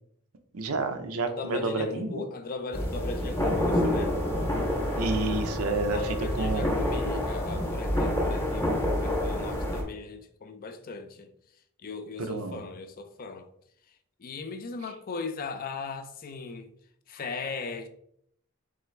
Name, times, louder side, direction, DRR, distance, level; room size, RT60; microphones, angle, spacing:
voice 1, 0.5-2.2 5.0-6.7 12.2-12.6, right 3 dB, 80° right, 0.6 m, -30 dB
voice 2, 1.3-4.2 5.9-11.3 11.8-13.5 14.2-16.7 17.1-17.9, left 4 dB, 40° left, 0.4 m, -38 dB
sound 1, 2.7-9.8, left 1 dB, 10° left, 0.8 m, -28 dB
Wind instrument woodwind instrument, 3.2-7.7, left 1 dB, 25° right, 0.5 m, -44 dB
3.8 x 3.3 x 3.1 m
head